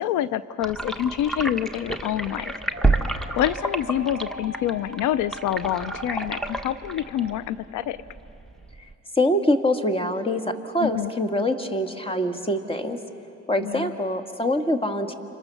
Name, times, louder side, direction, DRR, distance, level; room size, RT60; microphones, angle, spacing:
voice 1, 0.0-2.5 3.4-8.0 10.8-11.1 13.6-13.9, left 11 dB, 80° left, 16 dB, 0.6 m, -27 dB
sound 1, 0.6-8.9, right 2 dB, ahead, 1.2 m, -29 dB
sound 2, 2.3-7.4, right 1 dB, 30° right, 2.4 m, -42 dB
voice 2, 9.2-13.0 13.5-15.1, left 1 dB, 20° left, 6 dB, 1.8 m, -24 dB
29.5 x 25.5 x 7.0 m, 2.8 s
cardioid pair, 90°, 30 cm